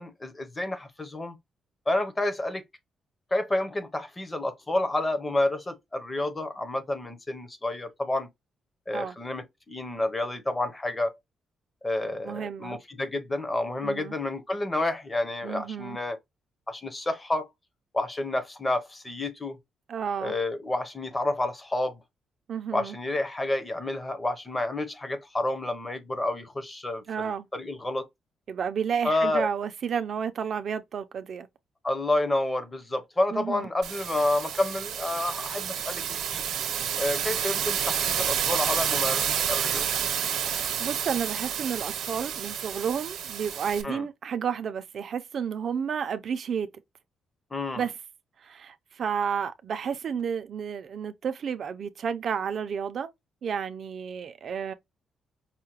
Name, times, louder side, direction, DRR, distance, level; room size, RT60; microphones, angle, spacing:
voice 1, 0.0-1.4 1.9-2.6 3.3-8.3 8.9-11.1 11.8-16.2 16.7-17.5 17.9-19.6 20.2-22.0 22.7-28.1 29.0-29.5 31.8-36.4 37.0-39.9 43.8-44.1 47.5-47.8, left 2 dB, 15° left, 0.7 m, -29 dB
voice 2, 12.2-12.8 13.8-14.1 15.4-16.0 19.9-20.3 22.5-23.0 27.1-27.5 28.5-31.5 33.3-33.7 40.3-46.7 47.7-47.9 48.4-53.1 53.4-54.7, right 7 dB, 45° right, 0.5 m, -31 dB
sound 1, 33.8-43.8, right 8 dB, 75° right, 0.8 m, -29 dB
5.6 x 2.2 x 3.0 m
cardioid pair, 170°, 0 cm